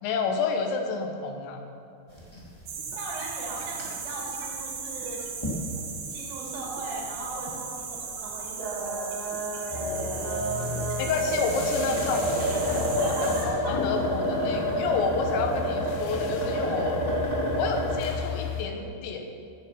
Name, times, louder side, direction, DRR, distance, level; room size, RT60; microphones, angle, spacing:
voice 1, 0.0-1.6 11.0-12.2 12.9-17.0 17.6-19.3, left 5 dB, 70° left, 4 dB, 3.3 m, -29 dB
sound 1, 2.1-2.6 2.9-3.0 3.5-3.8 4.4-4.5 5.4-5.6 5.9-6.0 7.2-7.3 8.5-18.1, right 1 dB, 25° left, 0.5 m, -29 dB
sound 2, 2.7-13.5, right 5 dB, 65° right, 3.2 m, -37 dB
voice 2, 3.0-5.2 6.1-9.1 9.6-10.9 11.8-13.7, right 2 dB, 80° right, -3 dB, 5.1 m, -38 dB
sound 3, 9.7-18.6, left 6 dB, 90° left, 2.0 m, -36 dB
15.0 x 11.0 x 5.8 m, 2.5 s
omnidirectional pair, 5.7 m